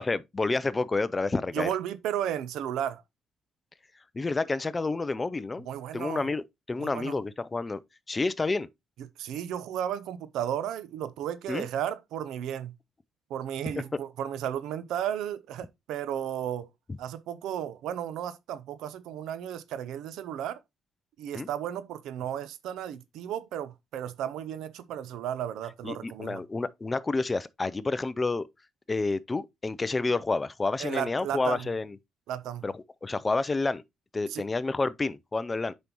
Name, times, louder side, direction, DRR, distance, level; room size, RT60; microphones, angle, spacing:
voice 1, 0.0-1.7 4.1-5.7 5.9-7.8 8.1-8.7 11.5-11.7 16.9-17.0 21.3-21.5 25.8-28.5 28.9-31.9 32.6-32.7 33.0-33.8 34.1-35.7, left 3 dB, 25° left, 0.5 m, -29 dB
voice 2, 1.5-3.0 5.6-6.3 6.8-7.2 9.2-12.7 13.3-16.7 17.0-20.6 21.2-26.4 30.8-31.7 32.3-32.7 34.3-34.4, right 10 dB, 85° right, 0.6 m, -34 dB
7.9 x 5.3 x 3.0 m
cardioid pair, 90°, 0 cm